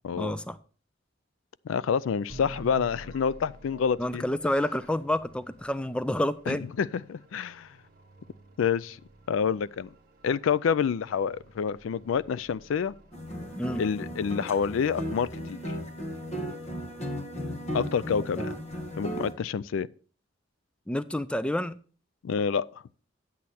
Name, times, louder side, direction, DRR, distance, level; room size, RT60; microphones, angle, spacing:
voice 1, 0.1-0.6 4.0-6.7 13.6-13.8 18.4-18.5 20.9-21.8, left 1 dB, 5° left, 0.4 m, -29 dB
voice 2, 1.7-4.2 6.5-7.7 8.6-9.0 9.3-9.9 10.2-12.9 13.8-15.6 17.7-18.5 19.0-19.9 22.2-22.7, left 6 dB, 80° left, 0.4 m, -28 dB
sound 1, 2.3-14.4, right 1 dB, 45° right, 1.1 m, -51 dB
sound 2, 13.1-19.3, equal, 35° left, 1.4 m, -36 dB
9.9 x 8.3 x 4.2 m
head